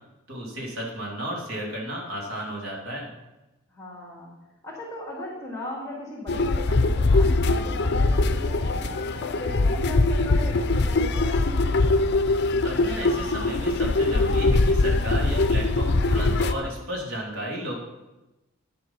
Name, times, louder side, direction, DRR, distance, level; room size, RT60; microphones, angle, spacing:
voice 1, 0.3-3.1 12.6-17.7, equal, 85° right, -2 dB, 3.1 m, -33 dB
voice 2, 3.7-4.4 4.6-11.7, left 1 dB, 10° left, -6 dB, 2.6 m, -37 dB
sound 1, 6.3-16.5, left 2 dB, 55° left, 0.6 m, -22 dB
10.5 x 7.6 x 5.8 m, 1.0 s
head